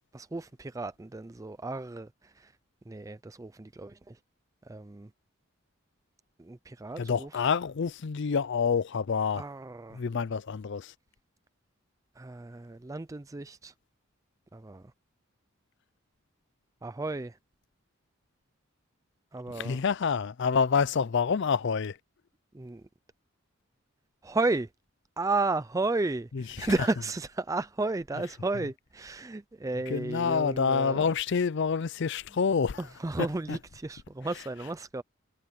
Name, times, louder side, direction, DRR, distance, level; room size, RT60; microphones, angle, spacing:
voice 1, 0.1-2.5 2.9-4.2 4.7-5.1 6.4-7.3 9.4-10.0 12.2-13.7 14.5-14.8 16.8-17.4 19.3-19.8 22.5-22.8 24.2-24.7 25.2-31.1 32.8-35.0, right 2 dB, 15° right, 0.4 m, -33 dB
voice 2, 7.0-9.4 9.9-10.9 19.5-22.0 26.3-26.7 29.9-32.8 33.5-33.6, left 6 dB, 55° left, 0.5 m, -27 dB
head